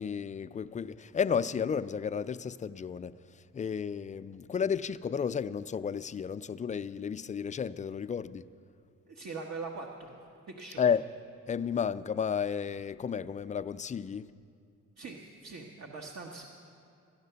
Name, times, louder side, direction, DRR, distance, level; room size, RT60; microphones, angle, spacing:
voice 1, 0.0-8.5 10.8-11.0 11.5-14.3, left 7 dB, 25° left, 13 dB, 0.3 m, -32 dB
voice 2, 9.1-10.2 10.6-10.8 15.0-16.4, right 4 dB, 60° right, 1 dB, 1.2 m, -42 dB
14.5 x 10.0 x 6.8 m, 2.5 s
cardioid pair, 90°, 30 cm